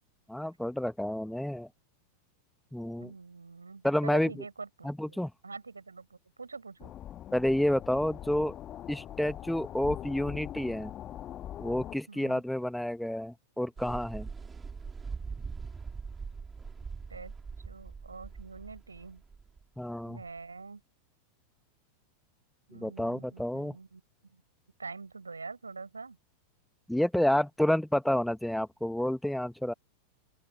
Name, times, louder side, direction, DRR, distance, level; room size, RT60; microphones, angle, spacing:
voice 1, 0.3-1.7 2.7-3.1 3.8-4.3 4.8-5.3 7.3-8.5 8.9-10.9 11.6-14.3 19.8-20.2 22.7-23.7 26.9-29.7, left 1 dB, ahead, 1.4 m, -29 dB
voice 2, 3.0-5.2 5.4-6.9 12.1-12.4 17.1-17.3 17.7-19.2 20.0-20.8 22.7-24.4 24.8-26.2, right 4 dB, 80° right, 7.1 m, -45 dB
sound 1, 6.8-12.0, left 12 dB, 30° left, 1.6 m, -42 dB
sound 2, 13.8-20.4, right 5 dB, 15° right, 3.6 m, -42 dB
open air
figure-of-eight pair, 90°, 0 cm